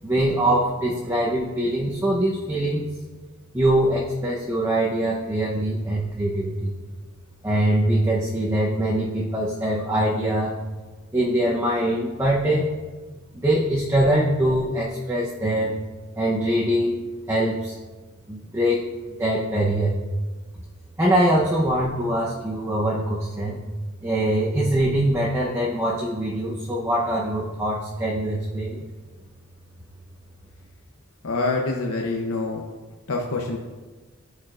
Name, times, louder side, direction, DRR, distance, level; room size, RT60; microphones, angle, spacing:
voice 1, 0.0-2.9 3.5-6.7 7.4-10.5 11.1-12.7 13.3-15.7 16.2-17.0 17.3-17.7 18.3-18.8 19.2-20.0 21.0-23.6 24.0-28.8, right 1 dB, 15° right, -4 dB, 0.8 m, -23 dB
voice 2, 31.2-32.6 33.1-33.6, left 3 dB, 80° left, 0 dB, 0.8 m, -26 dB
14.5 x 4.9 x 2.5 m, 1.3 s
head